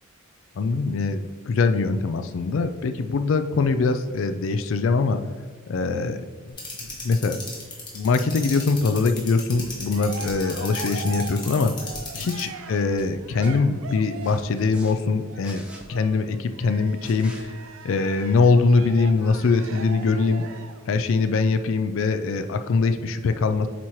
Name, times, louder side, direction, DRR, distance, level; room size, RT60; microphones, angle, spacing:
voice 1, 0.6-5.2 5.7-6.2 6.4-6.6 7.0-7.4 7.9-11.7 12.2-17.6 17.8-20.4 20.9-23.7, left 4 dB, 65° left, 8 dB, 0.3 m, -22 dB
sound 1, 6.6-12.4, left 4 dB, 20° left, 1.4 m, -35 dB
sound 2, 9.5-9.7 10.3-10.6 11.0-11.3 11.9-12.1 12.6-13.1 13.4-13.5 14.2-14.9 15.4-15.8 17.0-17.4 19.2-19.3, equal, 5° right, 0.7 m, -45 dB
Cheering, 9.5-14.5 15.3-20.9, right 5 dB, 70° right, 0.5 m, -40 dB
8.2 x 3.1 x 4.4 m, 1.5 s
head